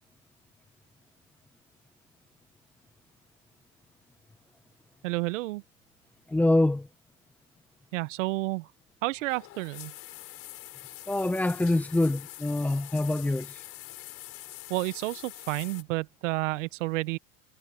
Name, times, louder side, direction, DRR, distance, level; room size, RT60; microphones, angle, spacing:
voice 1, 5.0-5.6 7.9-8.7 9.0-9.9 14.7-17.2, right 21 dB, 90° right, 1.0 m, -30 dB
voice 2, 6.3-6.9 11.1-13.5, left 2 dB, 5° left, 0.7 m, -25 dB
sound 1, 9.1-15.8, left 15 dB, 40° left, 6.7 m, -45 dB
supercardioid pair, 160°, 37 cm